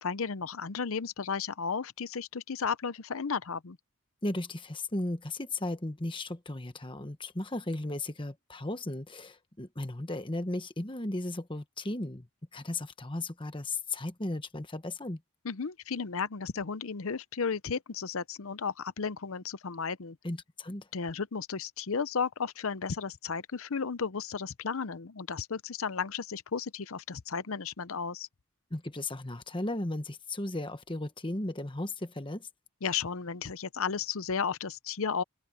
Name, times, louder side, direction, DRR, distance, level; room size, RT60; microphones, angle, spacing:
voice 1, 0.0-3.8 15.4-20.2 20.9-28.3 32.8-35.2, left 5 dB, 70° left, 0.7 m, -34 dB
voice 2, 4.2-12.3 12.5-15.2 20.2-20.9 28.7-32.5, left 2 dB, 20° left, 1.2 m, -35 dB
head